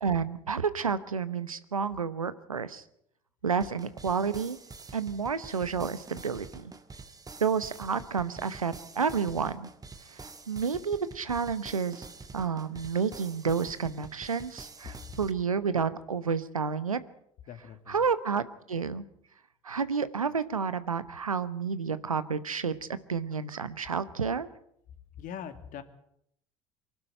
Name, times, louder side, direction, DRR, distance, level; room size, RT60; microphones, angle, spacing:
voice 1, 0.0-2.8 3.4-4.6 4.9-6.7 7.4-9.7 10.1-12.1 12.3-17.0 17.9-19.0 19.6-24.5, right 6 dB, 90° right, 15 dB, 0.9 m, -30 dB
sound 1, 3.6-15.3, right 4 dB, 20° right, 1.8 m, -47 dB
voice 2, 17.5-18.0 25.2-25.8, left 8 dB, 50° left, 10 dB, 2.2 m, -41 dB
24.0 x 12.0 x 9.0 m, 0.74 s
figure-of-eight pair, 65°, 17 cm